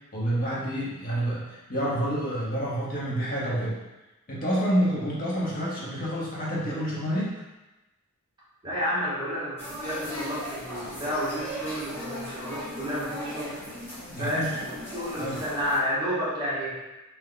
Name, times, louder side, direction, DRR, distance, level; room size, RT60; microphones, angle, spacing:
voice 1, 0.1-3.8 4.3-7.3 14.1-14.5 15.2-15.4, equal, 40° left, -6 dB, 1.0 m, -28 dB
voice 2, 8.6-13.5 14.2-16.7, equal, 20° right, -8 dB, 1.0 m, -31 dB
sound 1, 9.6-15.8, equal, 10° left, 1.1 m, -38 dB
3.3 x 2.9 x 3.8 m, 1.0 s
head